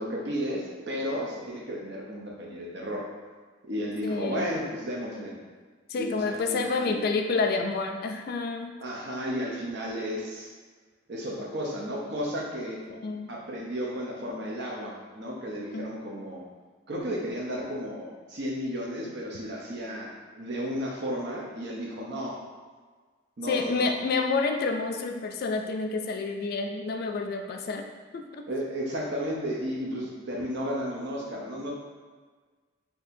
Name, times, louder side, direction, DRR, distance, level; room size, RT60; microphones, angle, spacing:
voice 1, 0.0-3.0 3.7-5.3 6.0-7.0 8.8-10.5 11.1-12.8 13.3-16.4 16.9-22.4 23.4-23.9 28.5-31.7, equal, 60° right, -2 dB, 0.7 m, -33 dB
voice 2, 4.0-4.5 5.9-8.7 12.9-13.3 15.7-15.9 23.4-27.9 28.1-28.4, left 4 dB, 50° left, 4 dB, 0.3 m, -29 dB
4.3 x 2.7 x 2.6 m, 1.4 s
head